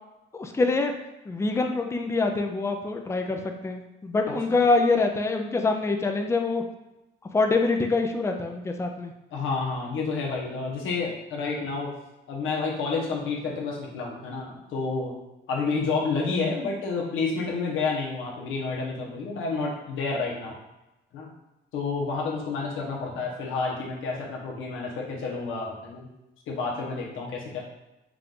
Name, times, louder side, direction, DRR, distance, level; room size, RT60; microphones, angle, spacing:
voice 1, 0.3-0.9 1.3-6.6 7.3-9.1, left 3 dB, 15° left, 4 dB, 0.5 m, -25 dB
voice 2, 9.3-11.9 12.3-15.1 15.5-20.6 21.1-21.3 21.7-26.1 26.5-27.6, left 4 dB, 85° left, -2 dB, 1.0 m, -29 dB
4.8 x 2.5 x 3.7 m, 0.97 s
cardioid pair, 90°, 20 cm